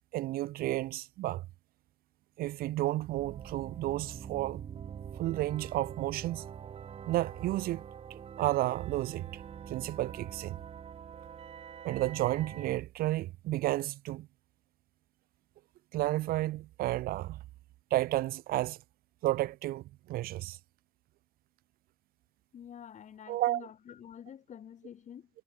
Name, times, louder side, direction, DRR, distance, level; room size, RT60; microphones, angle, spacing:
voice 1, 0.1-1.5 2.4-4.6 5.2-6.4 7.1-7.8 8.4-9.4 9.7-10.6 11.8-14.3 15.9-17.4 17.9-18.8 19.2-20.6 23.3-23.7, right 16 dB, 65° right, 0.9 m, -32 dB
sound 1, 3.2-12.8, right 8 dB, 40° right, 0.8 m, -45 dB
voice 2, 22.5-25.3, left 9 dB, 50° left, 4.3 m, -48 dB
supercardioid pair, 85°, 16 cm